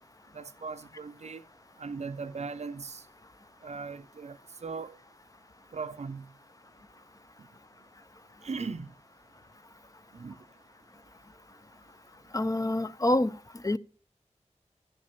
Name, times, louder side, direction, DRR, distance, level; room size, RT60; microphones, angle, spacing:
voice 1, 0.3-1.4 1.8-3.0 3.6-5.0 5.7-6.3 8.4-8.9 10.1-10.4, right 4 dB, 65° right, 0.6 m, -38 dB
voice 2, 12.3-13.4 13.6-13.8, left 1 dB, 30° left, 0.6 m, -26 dB
15.0 x 5.4 x 6.9 m
wide cardioid pair, 50°, 12 cm